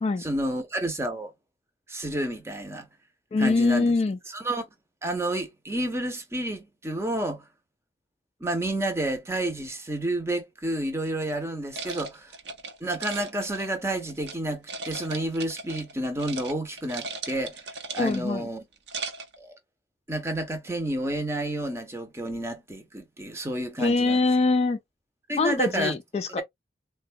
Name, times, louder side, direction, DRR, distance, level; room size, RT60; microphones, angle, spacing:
voice 1, 0.2-1.3 1.9-2.9 3.4-3.9 4.3-4.7 5.0-7.4 8.4-12.3 12.8-18.6 19.4-19.6 20.1-24.2 25.3-25.9, right 1 dB, 15° right, 0.7 m, -30 dB
voice 2, 3.3-4.2 18.0-18.5 23.8-24.8 25.4-26.4, left 3 dB, 35° left, 0.3 m, -23 dB
Shaken Ice Cubes, 11.7-14.4 14.7-15.9 16.2-16.5 16.8-18.3 18.7-19.4, right 3 dB, 70° right, 0.7 m, -37 dB
3.8 x 2.2 x 2.5 m
head